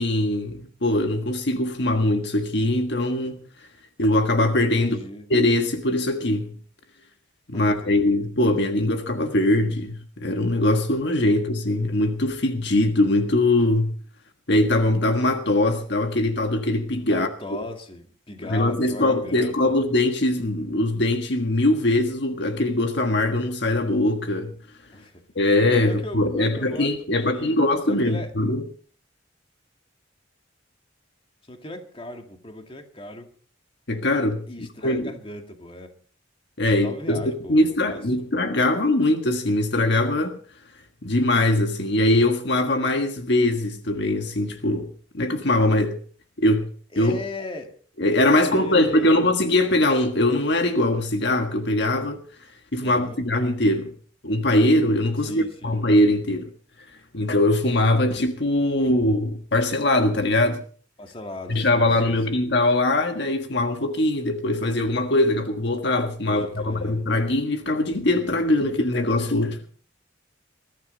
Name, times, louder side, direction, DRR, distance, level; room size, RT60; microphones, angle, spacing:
voice 1, 0.0-3.4 4.0-5.0 5.3-6.5 7.5-13.9 14.5-17.3 18.5-24.5 25.3-28.6 33.9-35.1 36.6-37.2 37.5-40.4 41.0-46.0 46.4-46.7 46.9-47.2 48.0-52.2 52.7-53.9 54.2-56.5 57.1-60.6 61.5-69.6, left 1 dB, 65° left, 1.6 m, -22 dB
voice 2, 4.8-5.3 7.5-8.0 11.3-11.4 17.1-19.7 24.9-25.2 25.8-27.6 27.9-28.3 31.5-33.3 34.5-35.9 36.6-38.0 46.9-47.7 48.4-49.3 52.8-53.2 55.2-55.8 61.0-62.4 66.3-67.0, left 1 dB, 30° left, 2.2 m, -37 dB
21.5 x 13.5 x 4.0 m
head